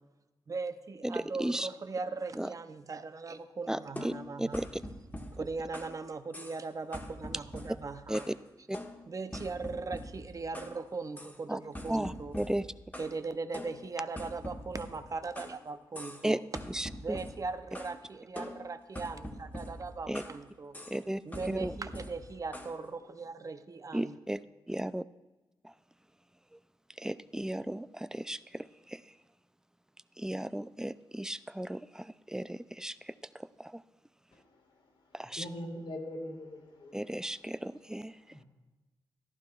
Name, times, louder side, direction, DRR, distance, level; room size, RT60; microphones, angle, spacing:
voice 1, 0.5-4.6 5.3-8.3 9.1-12.4 13.0-16.4 17.0-20.8 21.2-24.2, right 4 dB, 40° right, 11 dB, 0.6 m, -39 dB
voice 2, 1.0-1.7 2.4-2.5 3.7-4.8 8.1-8.2 8.7-8.8 9.3-9.4 11.5-11.6 11.9-12.6 16.2-16.4 16.7-17.2 20.1-20.2 20.9-21.2 21.5-21.7 23.9-25.0 25.6-25.7 27.0-29.0 30.2-33.8 35.1-35.5 36.9-38.2, right 1 dB, 5° right, 15 dB, 0.4 m, -35 dB
sound 1, 4.0-6.0 6.3-6.7 6.9-8.4 8.7-10.8 11.2-11.4 11.7-13.2 13.5-15.6 15.9-16.3 16.5-18.0 18.4-20.4 20.7-21.0 21.3-22.8, left 1 dB, 20° left, 1.3 m, -44 dB
voice 3, 35.3-36.9 38.3-38.4, left 1 dB, 75° left, 1 dB, 1.8 m, -41 dB
14.5 x 11.5 x 2.4 m, 1.1 s
cardioid pair, 60°, 8 cm